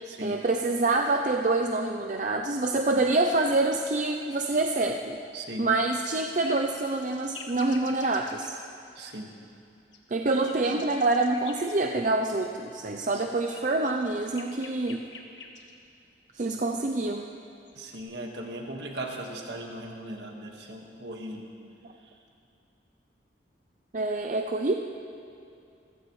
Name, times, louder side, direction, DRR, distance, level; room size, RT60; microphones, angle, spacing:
voice 1, 0.2-5.2 5.6-8.6 10.1-15.1 16.3-17.3 23.9-24.7, right 2 dB, 40° right, 3 dB, 0.5 m, -26 dB
voice 2, 5.3-5.7 9.0-9.3 13.1-13.2 17.8-21.5, right 1 dB, 65° right, 1 dB, 1.7 m, -38 dB
sound 1, 5.9-8.5 9.9-11.7 13.0-15.7 17.4-18.0, left 5 dB, 85° left, 1.5 m, -47 dB
26.0 x 15.5 x 3.2 m, 2.6 s
head